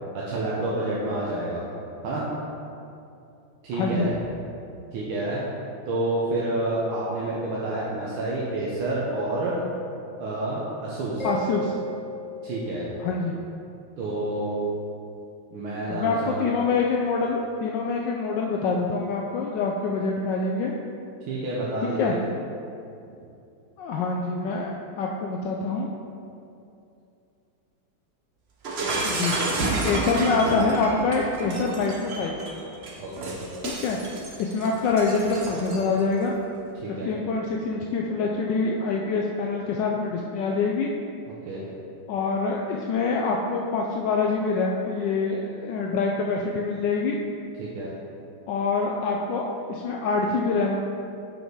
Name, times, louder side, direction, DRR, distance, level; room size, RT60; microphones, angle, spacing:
voice 1, 0.1-1.6 2.0-2.2 3.6-4.1 4.9-5.4 5.9-9.6 10.2-11.3 12.4-12.9 14.0-14.6 15.5-16.4 21.3-22.2 33.0-33.4 36.8-37.1 41.5-41.7 47.6-47.9, right 2 dB, 90° right, -6 dB, 1.7 m, -29 dB
voice 2, 3.7-4.1 11.2-11.7 13.0-13.4 15.9-20.7 22.0-22.1 23.8-25.9 28.7-29.4 29.8-32.4 33.6-34.0 34.4-36.4 37.0-40.9 42.1-47.2 48.5-49.4 49.7-50.8, left 4 dB, 75° left, 0 dB, 1.1 m, -25 dB
Mallet percussion, 11.2-13.7, right 1 dB, 50° left, 0.4 m, -36 dB
Shatter, 28.6-36.0, right 2 dB, 55° right, 0.7 m, -30 dB
6.1 x 5.2 x 4.6 m, 2.6 s
omnidirectional pair, 2.2 m